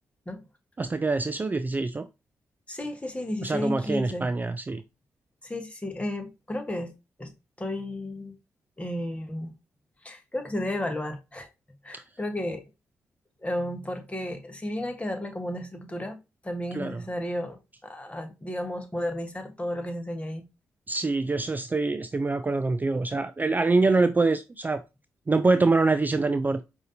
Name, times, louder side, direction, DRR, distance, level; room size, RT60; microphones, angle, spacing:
voice 1, 0.8-2.1 3.4-4.8 11.9-12.0 16.7-17.0 20.9-24.8 25.3-26.6, right 3 dB, 25° right, 0.3 m, -25 dB
voice 2, 2.7-4.3 5.4-6.9 7.2-7.3 7.6-8.3 8.8-9.5 10.0-11.5 11.8-12.6 13.4-16.2 16.4-20.4, left 1 dB, 20° left, 1.2 m, -33 dB
5.0 x 2.8 x 2.7 m
hypercardioid pair, 40°, 7 cm